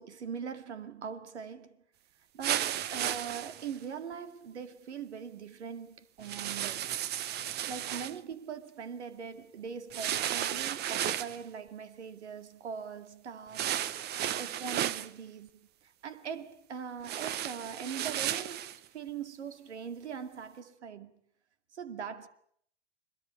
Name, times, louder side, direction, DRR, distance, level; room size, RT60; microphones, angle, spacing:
voice 1, 0.0-1.8 2.3-7.0 7.7-13.7 14.1-21.1 21.7-22.3, right 7 dB, 75° right, 2.3 m, -42 dB
sound 1, 2.4-3.8 6.2-8.2 9.9-11.4 13.5-15.1 17.0-18.8, right 11 dB, 30° right, 1.0 m, -34 dB
25.0 x 22.0 x 8.4 m
hypercardioid pair, 105°, 34 cm